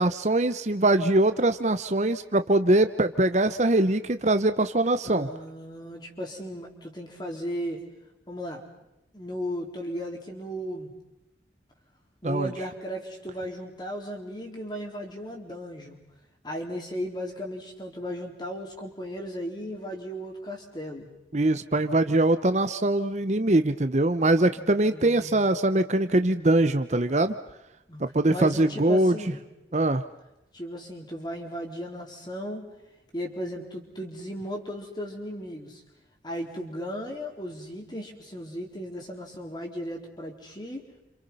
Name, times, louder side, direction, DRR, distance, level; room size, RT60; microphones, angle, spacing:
voice 1, 0.0-5.3 12.2-12.5 21.3-27.3 28.0-29.1 29.7-30.0, right 2 dB, 40° right, 10 dB, 0.9 m, -22 dB
voice 2, 5.0-7.8 8.3-8.6 9.1-10.9 12.2-16.0 16.4-21.1 24.5-25.4 27.9-28.0 28.3-29.4 30.5-32.7 33.1-35.8 36.2-40.8, equal, 25° left, 2 dB, 4.1 m, -36 dB
29.5 x 27.5 x 5.6 m, 0.91 s
head